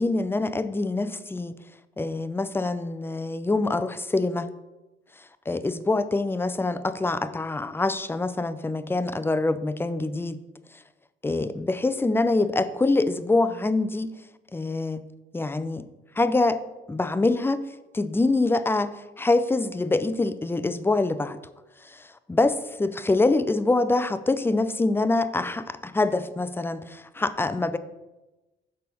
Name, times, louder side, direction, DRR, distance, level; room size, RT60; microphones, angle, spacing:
voice 1, 0.0-1.6 2.0-4.5 5.5-10.4 11.2-14.1 14.5-15.0 15.3-15.9 16.2-16.6 16.9-17.6 17.9-21.4 22.3-27.8, left 2 dB, 10° left, 13 dB, 0.4 m, -25 dB
6.4 x 4.0 x 5.5 m, 1.1 s
cardioid pair, 90°, 20 cm